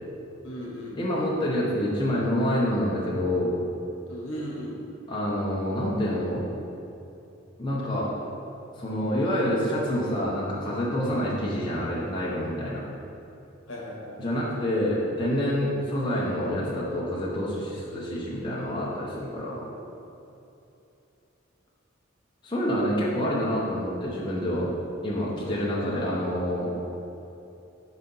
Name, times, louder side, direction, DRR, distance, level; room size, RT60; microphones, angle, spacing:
voice 1, 0.4-1.5 4.1-4.8 13.7-14.2 25.4-25.7, equal, 70° left, -3 dB, 1.3 m, -37 dB
voice 2, 0.9-3.5 5.1-6.4 7.6-8.1 8.8-12.8 14.2-19.6 22.4-24.7 25.0-26.7, equal, 25° left, -6 dB, 0.8 m, -27 dB
5.0 x 4.2 x 5.4 m, 2.9 s
head